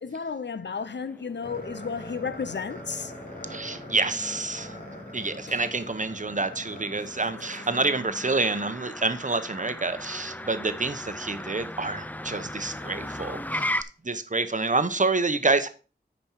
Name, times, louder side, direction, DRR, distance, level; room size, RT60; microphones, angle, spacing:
voice 1, 0.0-3.1 5.5-5.7 6.9-7.7 12.3-12.5, left 5 dB, 75° left, 0.6 m, -34 dB
Motor vehicle (road), 0.7-13.8, left 1 dB, 10° left, 0.5 m, -38 dB
sound 1, 1.4-7.8, equal, 50° left, 3.3 m, -43 dB
voice 2, 3.5-4.7 5.1-13.7 14.0-15.7, right 3 dB, 45° right, 0.8 m, -27 dB
8.9 x 5.3 x 4.5 m
wide cardioid pair, 55°, 18 cm